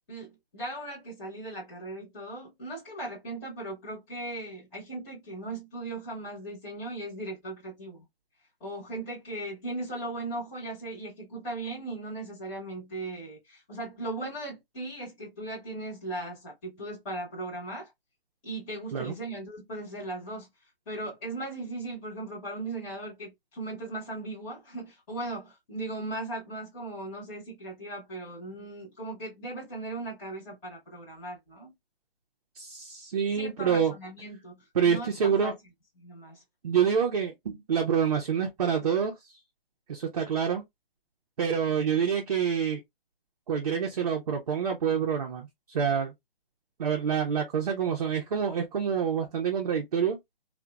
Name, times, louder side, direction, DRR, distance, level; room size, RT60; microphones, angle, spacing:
voice 1, 0.1-8.0 8.6-17.9 18.4-20.5 20.9-31.7 33.3-35.5 36.0-36.4, right 2 dB, 15° left, 0.9 m, -38 dB
voice 2, 32.6-33.9 34.7-35.5 36.6-39.4 39.9-40.6 41.4-42.8 43.5-46.1 46.8-50.2, right 7 dB, 40° right, 0.5 m, -27 dB
2.8 x 2.1 x 2.2 m
hypercardioid pair, 155°, 30 cm